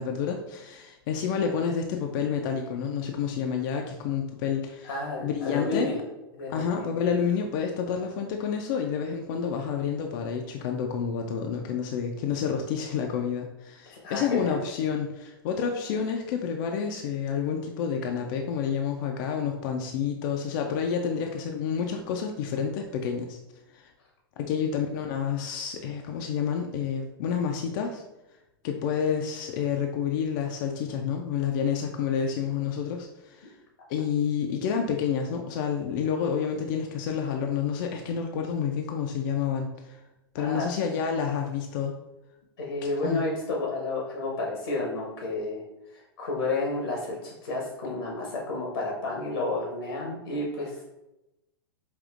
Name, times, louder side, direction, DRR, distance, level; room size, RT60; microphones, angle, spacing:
voice 1, 0.0-4.9 5.2-5.9 6.5-23.4 23.7-23.9 24.4-28.0 28.6-33.5 33.9-40.0 40.3-41.9 43.0-43.2, left 7 dB, 50° left, 3 dB, 0.4 m, -29 dB
voice 2, 4.8-6.0 6.3-7.0 13.9-14.6 40.4-40.7 42.6-45.6 45.9-50.8, left 2 dB, 85° left, -2 dB, 1.0 m, -31 dB
5.1 x 2.4 x 2.4 m, 0.94 s
hypercardioid pair, 115°, 13 cm